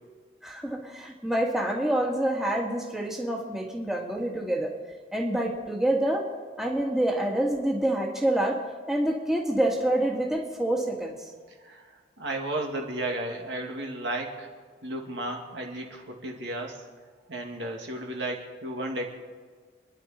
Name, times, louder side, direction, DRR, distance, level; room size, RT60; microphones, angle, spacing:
voice 1, 0.4-4.7 5.1-6.3 6.6-8.6 8.9-11.2, right 1 dB, ahead, -1 dB, 1.8 m, -27 dB
voice 2, 12.2-14.5 14.8-16.8 17.3-19.0, right 1 dB, 75° right, 1 dB, 2.4 m, -33 dB
27.5 x 10.5 x 4.4 m, 1.5 s
head